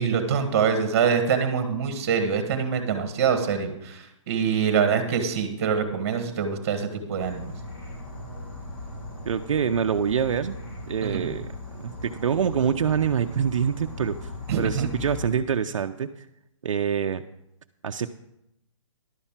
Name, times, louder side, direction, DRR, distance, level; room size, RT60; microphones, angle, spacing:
voice 1, 0.0-7.4 11.0-11.3 14.5-14.9, right 6 dB, 30° right, 7 dB, 1.4 m, -25 dB
Insect / Frog, 7.2-15.3, left 1 dB, 40° left, 2.5 m, -38 dB
voice 2, 9.3-10.6 10.9-11.5 11.8-14.3 14.6-16.1 16.6-17.2 17.8-18.1, right 7 dB, 70° right, 7 dB, 0.6 m, -25 dB
11.5 x 5.5 x 7.3 m, 0.83 s
hypercardioid pair, 170°, 17 cm